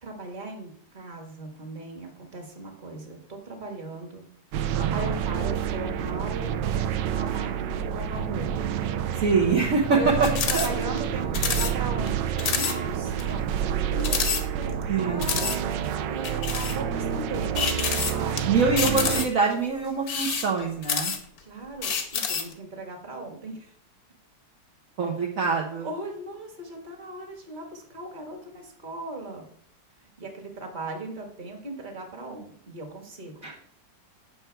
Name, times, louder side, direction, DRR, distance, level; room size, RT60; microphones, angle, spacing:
voice 1, 0.0-4.3 4.9-6.7 7.0-8.4 9.9-13.5 13.7-17.6 18.1-18.4 21.4-23.7 25.8-29.5 30.2-33.3, right 2 dB, 25° right, 2 dB, 1.7 m, -38 dB
sound 1, 4.5-19.3, right 8 dB, 75° right, 1.3 m, -28 dB
voice 2, 4.7-5.1 9.1-10.1 10.5-10.7 14.9-15.4 18.5-21.1 25.0-25.9 33.4-33.6, right 4 dB, 50° right, -1 dB, 1.3 m, -25 dB
sound 2, 10.2-10.7 11.0-11.1 11.3-11.7 12.1-12.2 12.4-12.8 13.2-13.3 14.0-14.8 15.2-15.6 16.2-16.8 17.6-18.4 18.8-19.5 20.0-21.4 21.8-22.5, left 6 dB, 60° left, 1.4 m, -28 dB
9.0 x 6.2 x 4.5 m, 0.62 s
omnidirectional pair, 2.0 m